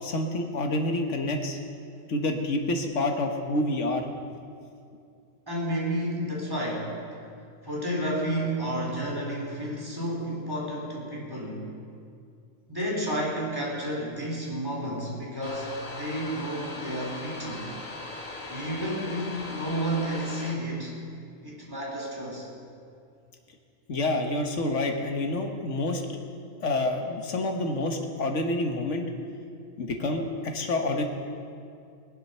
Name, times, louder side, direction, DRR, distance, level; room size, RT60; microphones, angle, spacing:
voice 1, 0.0-1.6 2.1-4.1 23.9-26.0 26.6-29.1 29.8-30.2 30.5-31.0, left 2 dB, 65° left, 3 dB, 1.7 m, -28 dB
voice 2, 5.5-6.9 7.6-11.7 12.7-17.7 18.5-20.9 21.4-22.5, right 1 dB, 15° right, -4 dB, 3.6 m, -31 dB
sound 1, 15.4-20.5, left 2 dB, 85° left, 1.9 m, -39 dB
21.0 x 7.7 x 6.8 m, 2.4 s
omnidirectional pair, 1.4 m